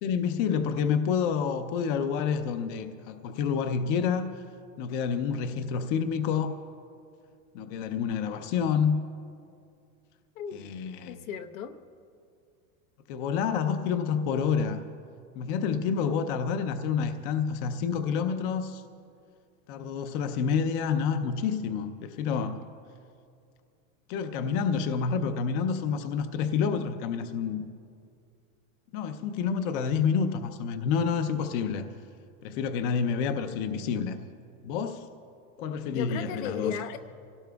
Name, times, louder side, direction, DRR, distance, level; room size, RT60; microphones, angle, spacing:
voice 1, 0.0-4.4 4.8-6.5 7.5-9.0 10.5-11.2 13.1-14.8 15.3-18.8 19.7-22.6 24.1-27.6 28.9-31.8 32.4-34.2 34.6-35.1 35.6-36.8, left 6 dB, 40° left, 8 dB, 0.6 m, -28 dB
voice 2, 11.1-11.8 35.9-37.0, left 8 dB, 75° left, 8 dB, 1.0 m, -35 dB
25.0 x 17.5 x 2.3 m, 2.3 s
supercardioid pair, 160°, 41 cm